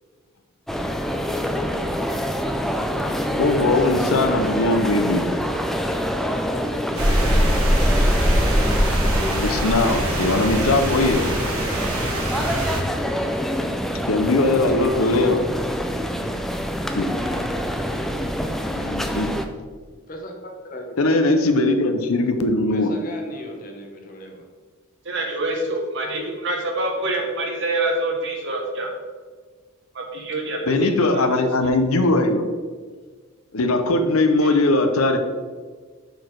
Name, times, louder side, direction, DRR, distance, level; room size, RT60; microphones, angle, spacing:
sound 1, 0.7-19.4, equal, ahead, 0.3 m, -26 dB
voice 1, 3.3-5.3 9.3-11.3 14.1-15.5 16.9-17.1 18.7-19.3 21.0-22.9 30.7-32.4 33.5-35.2, left 2 dB, 85° left, 7 dB, 0.7 m, -20 dB
sound 2, 7.0-12.8, equal, 85° right, 1.6 m, -22 dB
voice 2, 20.1-21.0 22.7-24.4, left 1 dB, 40° left, 2 dB, 1.0 m, -37 dB
voice 3, 25.0-28.9 29.9-31.4, right 2 dB, 60° right, 1 dB, 1.4 m, -26 dB
6.7 x 4.3 x 4.6 m, 1.5 s
head